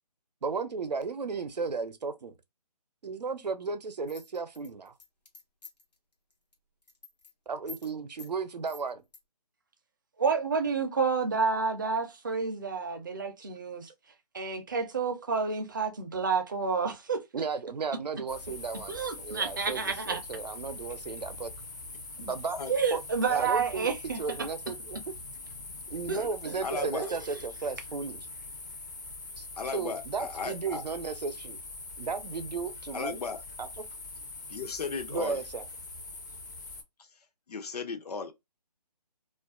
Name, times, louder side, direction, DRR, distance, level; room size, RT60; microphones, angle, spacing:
voice 1, 0.4-2.3 3.0-4.9 7.5-9.0 17.3-21.5 22.1-22.6 22.9-23.0 23.3-23.9 24.2-25.0 25.9-28.3 29.4-29.5 29.7-31.6 32.0-33.2 33.6-33.7 35.1-35.6, right 5 dB, 90° right, 0.6 m, -34 dB
sound 1, 4.1-5.9 6.3-6.5 6.8-7.3 7.7-7.9 8.2-8.3 8.7-9.2, left 4 dB, 85° left, 1.0 m, -48 dB
voice 2, 10.2-13.9 14.3-17.2 18.9-20.2 22.7-24.2 26.1-27.2, right 5 dB, 30° right, 0.4 m, -30 dB
sound 2, 18.3-36.8, left 3 dB, 30° left, 0.4 m, -43 dB
voice 3, 22.3-22.7 23.3-23.4 26.6-27.1 29.6-30.8 32.9-33.4 34.5-35.4 37.5-38.3, left 5 dB, 70° left, 0.6 m, -36 dB
2.4 x 2.2 x 2.3 m
figure-of-eight pair, 160°, 20 cm